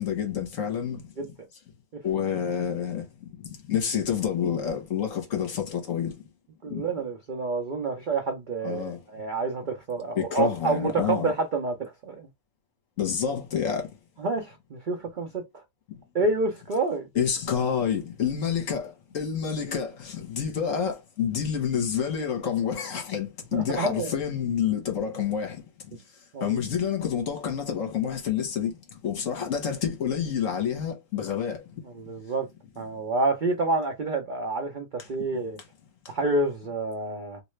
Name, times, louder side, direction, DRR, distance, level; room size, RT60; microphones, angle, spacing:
voice 1, 0.0-1.0 2.0-3.0 3.7-6.1 6.7-6.8 8.6-9.0 10.2-11.3 13.0-13.9 17.1-25.6 26.4-28.7 29.0-31.6, left 8 dB, 55° left, 1.3 m, -28 dB
voice 2, 6.6-12.3 14.2-15.6 16.1-17.1 23.5-24.1 26.3-26.6 31.9-32.5 32.8-35.6 36.1-37.4, right 3 dB, 80° right, 0.4 m, -28 dB
3.1 x 2.8 x 3.1 m
omnidirectional pair, 1.7 m